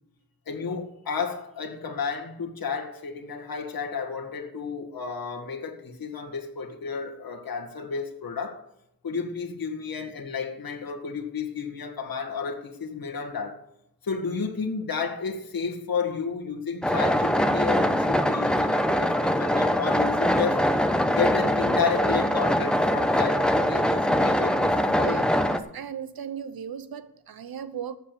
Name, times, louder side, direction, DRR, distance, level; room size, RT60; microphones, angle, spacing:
voice 1, 0.5-8.6 9.0-13.6 14.0-20.7 21.1-25.3, left 6 dB, 65° left, 2.1 m, -32 dB
sound 1, 16.8-25.6, equal, ahead, 0.9 m, -23 dB
voice 2, 25.0-25.3 25.7-28.0, right 8 dB, 65° right, 0.9 m, -36 dB
12.5 x 7.6 x 6.9 m
cardioid pair, 80°, 39 cm